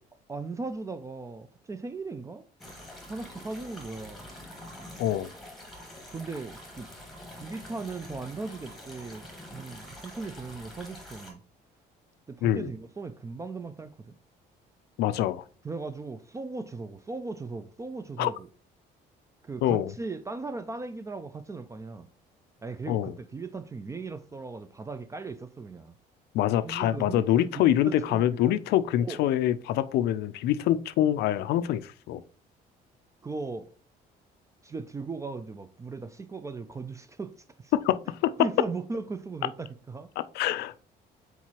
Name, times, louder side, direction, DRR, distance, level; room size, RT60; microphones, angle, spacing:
voice 1, 0.3-2.5 3.1-4.3 6.1-6.9 7.3-9.3 9.5-11.4 12.3-14.2 15.6-18.5 19.4-22.1 22.6-25.9 26.6-28.5 29.0-29.3 33.2-33.7 34.6-37.7 38.4-40.1, right 3 dB, 20° right, 0.3 m, -38 dB
sound 1, 2.6-11.3, left 1 dB, ahead, 1.4 m, -46 dB
voice 2, 15.0-15.4 18.2-18.3 19.6-19.9 22.9-23.1 26.3-32.2 37.7-38.3 40.3-40.7, left 12 dB, 75° left, 0.4 m, -25 dB
4.5 x 4.0 x 2.9 m
cardioid pair, 110°, 17 cm